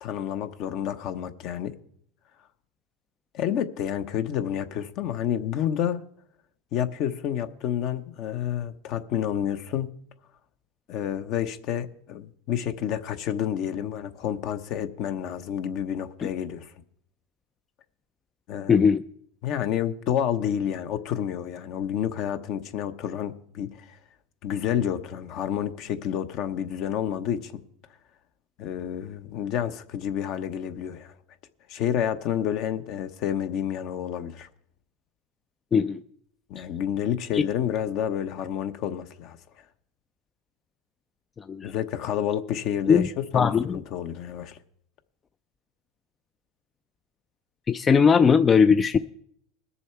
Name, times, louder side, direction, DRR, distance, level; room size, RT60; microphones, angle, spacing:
voice 1, 0.0-1.7 3.3-6.0 6.7-9.9 10.9-16.7 18.5-18.9 19.4-24.0 24.4-27.6 28.6-31.1 31.7-34.5 36.5-39.4 41.6-44.6, left 9 dB, 55° left, 0.9 m, -29 dB
voice 2, 18.7-19.0 35.7-36.0 37.3-37.4 41.5-41.7 42.9-43.1 43.3-43.8 47.7-49.0, left 6 dB, 25° left, 0.4 m, -19 dB
21.0 x 7.0 x 4.5 m
supercardioid pair, 110°, 0 cm